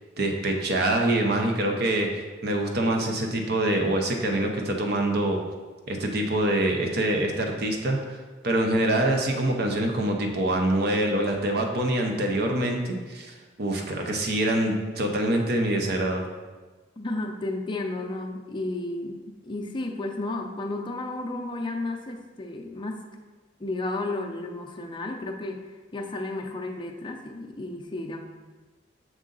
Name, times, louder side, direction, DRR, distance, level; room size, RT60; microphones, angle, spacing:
voice 1, 0.2-2.1 2.4-5.4 5.9-8.2 8.4-16.3, right 1 dB, 60° right, 2 dB, 0.8 m, -25 dB
voice 2, 17.0-23.1 23.6-28.3, left 2 dB, 25° left, 2 dB, 0.5 m, -33 dB
6.3 x 3.8 x 3.9 m, 1.3 s
head